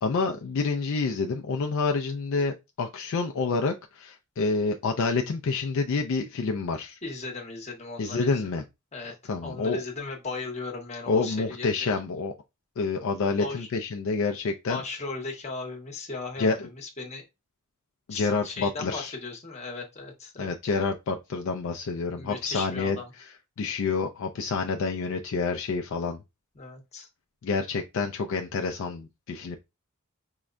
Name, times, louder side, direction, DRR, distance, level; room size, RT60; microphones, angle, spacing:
voice 1, 0.0-7.0 8.0-8.6 9.3-9.8 11.1-12.3 12.8-14.8 16.4-16.5 18.1-19.1 20.4-23.0 23.6-26.2 27.4-29.6, left 4 dB, 65° left, 0.4 m, -28 dB
voice 2, 7.0-8.4 8.9-9.1 9.4-11.9 13.4-13.7 14.7-17.2 18.1-20.5 22.1-23.1 26.5-27.1, left 3 dB, 30° left, 0.9 m, -37 dB
4.6 x 2.1 x 2.4 m
head